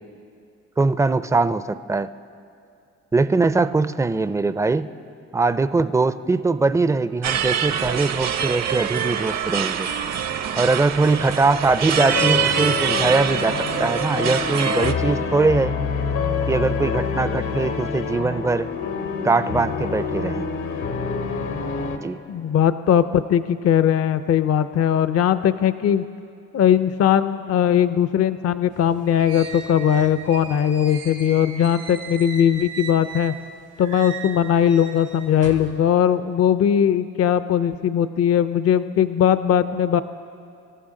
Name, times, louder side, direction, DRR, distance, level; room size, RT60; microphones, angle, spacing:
voice 1, 0.8-2.1 3.1-4.9 5.3-9.9 10.6-15.7 16.5-18.7 19.2-20.5 22.0-22.2, right 3 dB, 10° right, 13 dB, 0.4 m, -21 dB
sound 1, 7.2-14.9, right 8 dB, 60° right, 0.8 m, -25 dB
sound 2, 11.9-22.0, left 5 dB, 85° left, 1.2 m, -27 dB
voice 2, 22.3-26.0 26.5-33.3 33.8-40.0, left 9 dB, 55° left, 13 dB, 0.5 m, -19 dB
sound 3, 28.7-33.5 33.8-35.7, right 6 dB, 85° right, 2.1 m, -37 dB
25.5 x 14.0 x 3.8 m, 2.4 s
cardioid pair, 90°, 30 cm